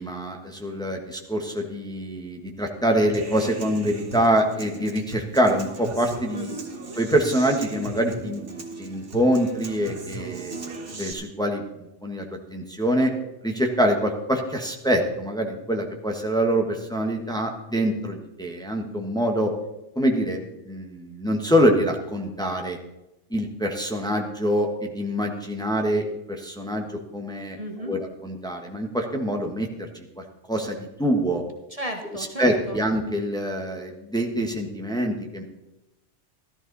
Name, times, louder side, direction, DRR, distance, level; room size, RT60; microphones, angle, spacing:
voice 1, 0.0-6.5 7.0-10.6 11.0-11.6 12.0-12.3 12.5-13.1 13.4-19.5 19.9-20.4 20.6-22.8 23.3-26.9 27.1-27.6 27.9-29.9 30.2-31.4 32.4-35.4, equal, 5° left, 2 dB, 1.4 m, -25 dB
Human voice / Acoustic guitar, 3.1-11.1, right 3 dB, 75° right, 2.1 m, -37 dB
voice 2, 6.3-6.7 27.6-28.0 31.7-32.8, right 1 dB, 30° right, 2 dB, 1.2 m, -34 dB
14.0 x 13.0 x 4.1 m, 0.93 s
omnidirectional pair, 1.2 m